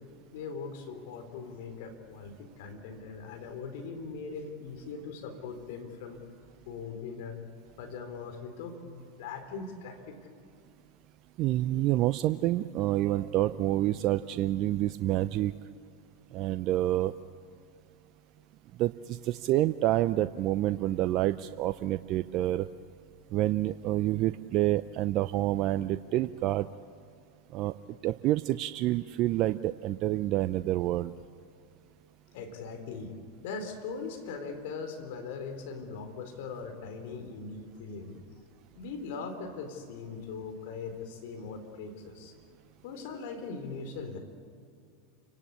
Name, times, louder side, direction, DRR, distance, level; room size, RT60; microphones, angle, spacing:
voice 1, 0.3-6.3 6.7-7.4 7.8-10.2 32.3-33.1 33.4-38.2 38.7-42.3 42.8-44.2, left 5 dB, 65° left, 6 dB, 4.1 m, -40 dB
voice 2, 11.4-15.5 16.3-17.1 18.8-22.7 23.3-26.7 27.5-27.7 28.0-31.1, right 14 dB, 50° right, 12 dB, 0.6 m, -28 dB
29.0 x 18.0 x 8.7 m, 2.4 s
hypercardioid pair, 100°, 0 cm